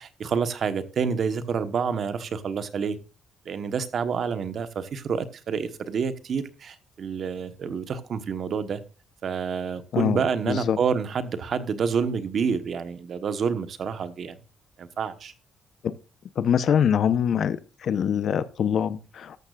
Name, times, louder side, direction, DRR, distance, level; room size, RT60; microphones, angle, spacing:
voice 1, 0.0-3.0 3.4-8.8 9.2-14.4 14.8-15.3, right 6 dB, 45° right, 1.1 m, -28 dB
voice 2, 10.5-10.8 15.8-15.9 16.4-17.6 17.8-19.4, left 8 dB, 50° left, 0.8 m, -23 dB
13.5 x 13.0 x 2.4 m
cardioid pair, 150°, 0 cm